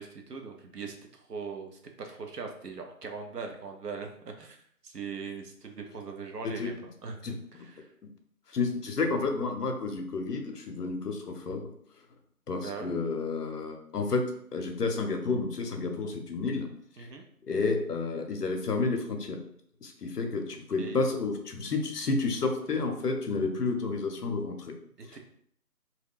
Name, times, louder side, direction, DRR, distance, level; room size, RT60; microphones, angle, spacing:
voice 1, 0.0-7.9 12.6-13.0 17.0-17.2 20.8-21.1 25.0-25.2, right 5 dB, 85° right, 3 dB, 0.7 m, -41 dB
voice 2, 8.5-11.6 12.5-14.2 14.5-16.7 17.0-17.1 17.5-19.4 19.8-24.7, left 3 dB, 80° left, 5 dB, 0.7 m, -30 dB
2.3 x 2.2 x 3.4 m, 0.65 s
figure-of-eight pair, 155°, 46 cm